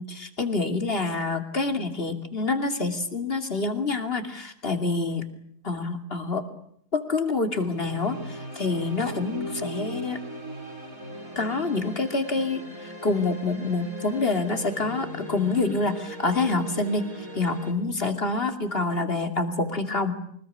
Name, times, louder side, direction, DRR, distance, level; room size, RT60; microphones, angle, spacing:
voice 1, 0.0-5.2 5.6-6.4 6.9-10.2 11.4-20.1, left 3 dB, 35° left, 7 dB, 2.9 m, -27 dB
sound 1, 7.5-17.7, equal, 60° right, 5.3 m, -38 dB
24.5 x 21.0 x 9.9 m, 0.66 s
omnidirectional pair, 1.7 m